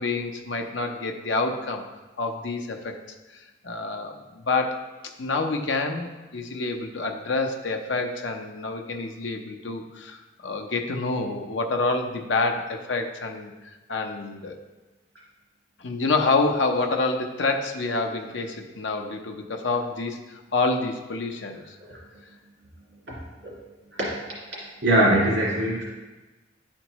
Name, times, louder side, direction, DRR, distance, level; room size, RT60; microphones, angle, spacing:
voice 1, 0.0-1.8 2.2-3.0 3.3-4.8 5.2-13.5 13.9-14.6 15.8-21.7, left 3 dB, 90° left, 4 dB, 0.8 m, -27 dB
voice 2, 21.8-22.2 23.1-23.2 23.4-23.5 24.0-24.2 24.5-25.8, right 1 dB, 75° right, -6 dB, 2.3 m, -23 dB
10.5 x 4.4 x 3.0 m, 1.2 s
head